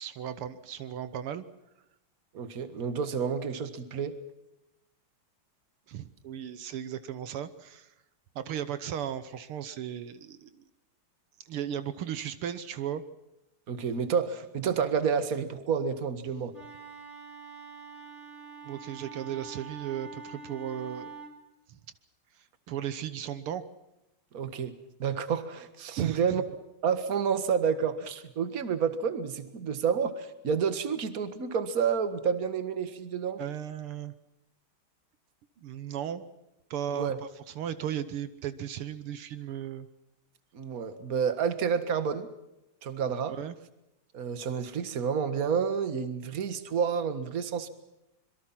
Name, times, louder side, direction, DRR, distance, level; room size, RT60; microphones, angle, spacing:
voice 1, 0.0-1.4 5.9-7.9 8.4-10.6 11.4-13.0 18.6-21.1 21.7-21.8 22.4-23.6 26.0-26.4 33.4-34.1 35.6-36.2 36.7-39.9 43.3-43.5, right 10 dB, 80° right, 12 dB, 2.0 m, -36 dB
voice 2, 2.3-4.2 13.7-16.5 24.3-26.4 26.8-33.4 36.9-37.2 40.5-42.3 42.8-43.4 44.1-47.7, right 6 dB, 45° right, 11 dB, 1.9 m, -29 dB
Wind instrument woodwind instrument, 16.5-21.4, right 5 dB, 30° left, 3.6 m, -45 dB
26.0 x 22.5 x 5.9 m, 0.90 s
omnidirectional pair, 2.4 m